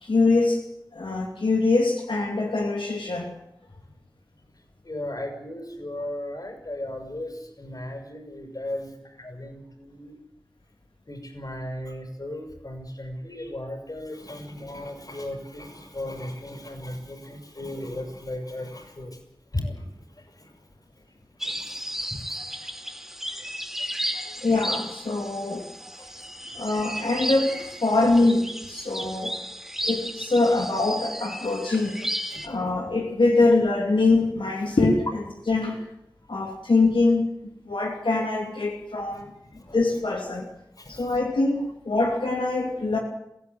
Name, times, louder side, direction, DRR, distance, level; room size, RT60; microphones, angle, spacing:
voice 1, 0.0-0.6 0.9-3.3 24.4-25.6 26.5-29.4 29.8-32.0 32.4-35.1 35.5-35.8 36.3-37.3 37.6-39.3 39.7-40.5 40.9-43.0, left 3 dB, 90° left, 0 dB, 2.8 m, -23 dB
voice 2, 4.8-10.2 11.1-19.2 19.5-20.6 21.0-22.7 23.3-23.5 23.8-23.9 24.3-24.5 25.2-25.3 26.0-26.7 29.1-29.2 30.5-30.6 32.3-32.8 39.1-39.2 39.5-40.0 40.7-41.2, left 1 dB, 45° left, 5 dB, 6.0 m, -37 dB
sound 1, 21.4-32.5, equal, 5° right, 3.4 m, -34 dB
23.0 x 16.0 x 9.5 m, 0.86 s
wide cardioid pair, 60°, 8 cm